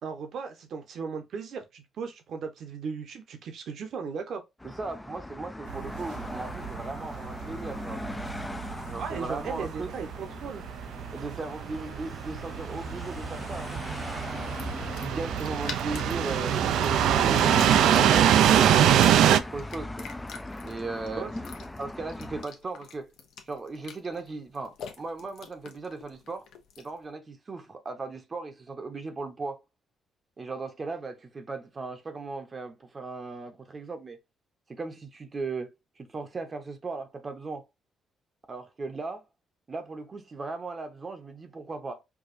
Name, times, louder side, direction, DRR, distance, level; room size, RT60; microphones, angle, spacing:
voice 1, 0.0-4.4 9.0-10.6 21.2-21.3, right 5 dB, 65° right, 0.9 m, -36 dB
sound 1, 4.6-22.4, left 2 dB, 15° left, 0.3 m, -38 dB
voice 2, 4.6-8.0 8.9-9.9 11.1-14.5 14.9-17.7 18.0-20.1 20.6-21.3 21.8-23.1 23.5-26.5 26.8-29.6 30.4-34.2 34.7-37.7 38.5-39.2 39.7-42.0, right 3 dB, 35° right, 0.7 m, -37 dB
sound 2, 5.7-19.4, right 10 dB, 80° right, 0.3 m, -24 dB
sound 3, 12.3-27.0, left 6 dB, 80° left, 0.7 m, -47 dB
4.7 x 2.3 x 2.5 m
cardioid pair, 90°, 0 cm